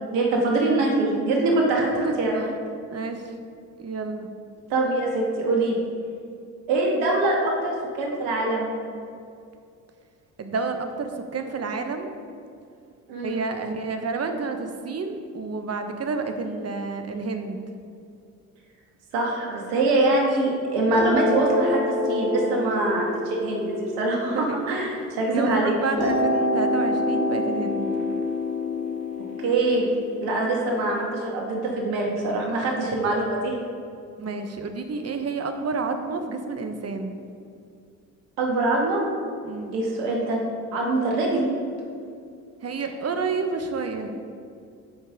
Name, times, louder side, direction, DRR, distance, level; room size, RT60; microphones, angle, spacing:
voice 1, 0.1-2.4 4.7-5.8 6.7-8.7 13.1-13.4 19.1-25.7 29.4-29.9 30.2-33.5 38.4-39.0 39.7-40.4 40.7-41.5, right 2 dB, 80° right, -1 dB, 2.1 m, -23 dB
voice 2, 2.9-3.3 3.8-4.3 10.4-12.1 13.2-17.6 24.3-25.0 25.3-27.9 34.2-37.2 39.4-39.7 42.6-44.1, right 4 dB, 35° right, 6 dB, 1.2 m, -30 dB
sound 1, 20.9-25.3 26.0-30.9, left 2 dB, 75° left, 2.3 m, -27 dB
15.5 x 5.5 x 3.7 m, 2.4 s
hypercardioid pair, 60°, 42 cm